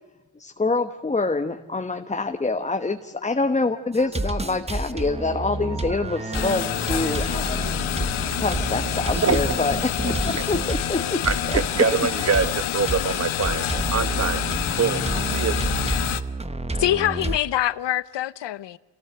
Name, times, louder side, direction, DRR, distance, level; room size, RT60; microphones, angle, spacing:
voice 1, 0.4-7.6 8.4-11.2 11.5-11.6, left 3 dB, 15° left, 1.2 m, -26 dB
sound 1, 3.9-17.4, right 2 dB, 15° right, 1.2 m, -29 dB
Telephone, 4.0-4.6 4.9-6.5 6.9-9.7 10.0-10.2 10.5-10.7 10.9-11.2 11.4-11.6 11.9-12.1 12.4-12.6, right 6 dB, 50° right, 4.1 m, -41 dB
sound 2, 6.3-16.2, left 12 dB, 85° left, 1.4 m, -28 dB
voice 2, 11.2-13.7 13.9-14.4 14.8-15.0 15.3-15.6, right 6 dB, 35° right, 1.4 m, -24 dB
voice 3, 16.8-18.8, left 13 dB, 60° left, 1.0 m, -24 dB
28.0 x 18.0 x 8.0 m
cardioid pair, 120°, 47 cm